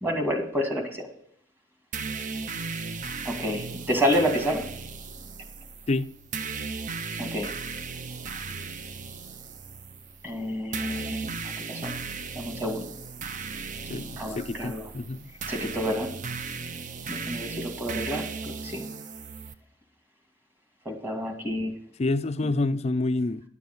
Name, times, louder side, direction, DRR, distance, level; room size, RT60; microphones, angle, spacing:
voice 1, 0.0-1.0 3.2-4.6 7.2-7.5 10.2-11.3 11.7-11.9 12.4-12.9 14.2-14.9 15.5-16.1 17.1-18.8 20.9-21.7 22.4-22.5, equal, 10° right, 2.3 m, -29 dB
sound 1, 1.9-19.5, right 4 dB, 40° right, 0.6 m, -36 dB
voice 2, 13.9-15.3 22.0-23.4, left 2 dB, 35° left, 0.4 m, -28 dB
11.0 x 7.0 x 7.8 m
head